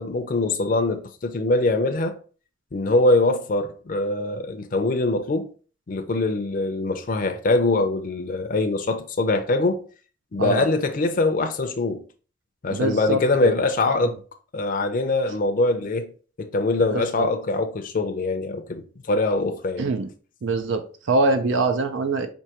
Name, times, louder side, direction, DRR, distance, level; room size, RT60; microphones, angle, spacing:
voice 1, 0.0-2.2 2.7-5.5 5.9-9.9 10.3-12.0 12.6-14.2 14.5-16.1 16.4-18.8 19.1-19.9, left 2 dB, 45° left, 0.5 m, -23 dB
voice 2, 12.7-13.5 14.0-14.1 16.9-17.3 19.8-20.1 20.4-22.3, right 3 dB, 80° right, 0.5 m, -24 dB
4.5 x 2.7 x 2.8 m
head